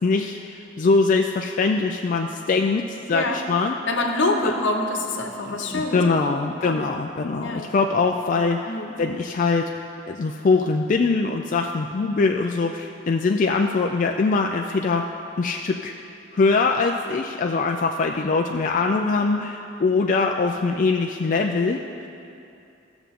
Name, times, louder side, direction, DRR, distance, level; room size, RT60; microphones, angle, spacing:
voice 1, 0.0-3.8 4.4-4.5 5.4-9.7 10.1-15.0 15.4-15.9 16.3-22.1, left 4 dB, 45° left, 2 dB, 0.4 m, -22 dB
voice 2, 3.9-6.8 7.4-7.9 8.7-8.9, left 2 dB, 75° left, 3 dB, 1.0 m, -26 dB
15.0 x 7.0 x 3.7 m, 2.6 s
head